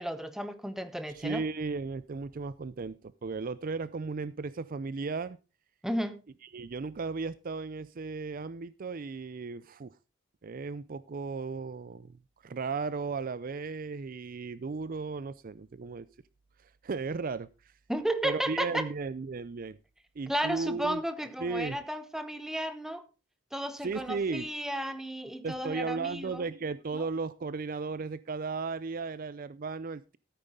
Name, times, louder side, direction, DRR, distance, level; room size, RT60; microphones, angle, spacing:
voice 1, 0.0-1.4 5.8-6.2 17.9-18.9 20.3-23.0 23.5-26.4 26.9-27.0, right 1 dB, ahead, 1.0 m, -33 dB
voice 2, 1.1-5.4 6.5-10.0 10.4-16.1 16.6-17.7 18.2-19.8 20.2-21.0 21.4-21.8 23.8-24.5 25.4-30.2, right 4 dB, 45° right, 0.5 m, -35 dB
14.0 x 9.0 x 3.7 m
head